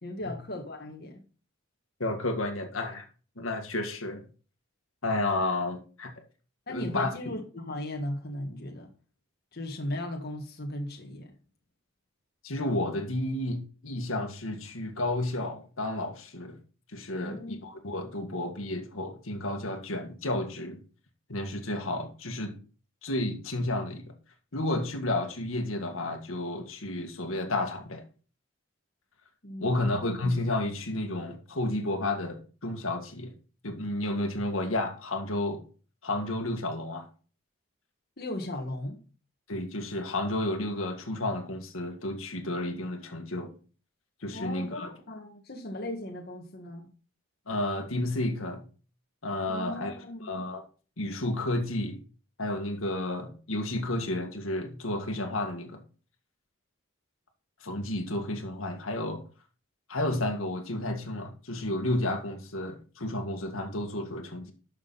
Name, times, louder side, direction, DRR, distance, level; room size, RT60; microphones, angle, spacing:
voice 1, 0.0-1.2 6.7-8.9 9.5-11.3 17.1-17.6 29.4-30.0 38.2-39.0 44.3-46.9 49.5-50.3, left 1 dB, 50° left, 1.7 m, -37 dB
voice 2, 2.0-3.0 3.4-4.2 5.0-6.1 6.7-7.3 12.4-16.6 16.9-20.8 21.3-22.6 23.0-24.0 24.5-28.0 29.6-33.3 33.6-35.6 36.0-37.1 39.5-43.5 44.2-44.9 47.5-48.7 49.2-49.9 50.2-50.6 51.0-52.0 52.4-55.8 57.6-59.2 59.9-64.5, left 1 dB, 80° left, 1.8 m, -31 dB
12.0 x 6.4 x 4.1 m
head